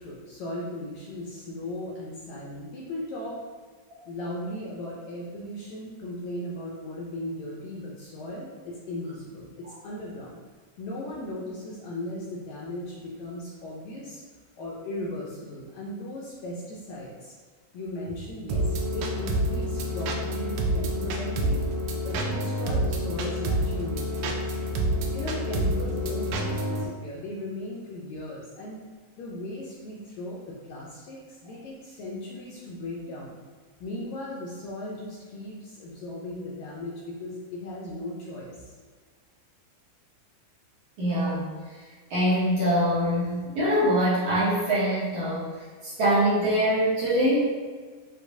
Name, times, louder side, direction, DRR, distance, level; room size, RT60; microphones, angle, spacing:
voice 1, 0.0-3.4 4.1-10.4 10.8-14.2 14.6-17.3 17.7-21.6 22.0-24.6 25.1-28.8 29.2-33.4 33.8-38.7, left 1 dB, 75° left, -4 dB, 1.7 m, -37 dB
sound 1, 18.5-26.8, equal, 80° right, 1.7 m, -28 dB
voice 2, 41.0-41.5 42.1-45.5 45.8-47.5, equal, 65° right, -10 dB, 1.7 m, -23 dB
6.3 x 2.8 x 2.6 m, 1.5 s
omnidirectional pair, 3.8 m